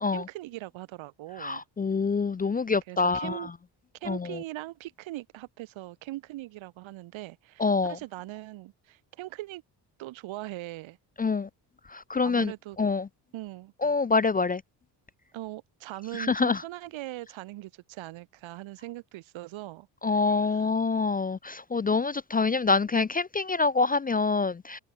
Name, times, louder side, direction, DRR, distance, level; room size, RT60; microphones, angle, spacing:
voice 1, 0.1-1.6 2.9-3.5 4.0-9.6 10.0-11.0 12.2-12.8 13.3-13.7 15.3-19.9 20.3-20.7, right 17 dB, 75° right, 3.6 m, -40 dB
voice 2, 1.4-3.5 4.0-4.4 7.6-8.0 11.2-11.5 11.9-12.5 12.8-13.1 13.8-14.6 16.1-16.6 20.0-24.8, left 4 dB, 20° left, 0.5 m, -26 dB
supercardioid pair, 65°, 46 cm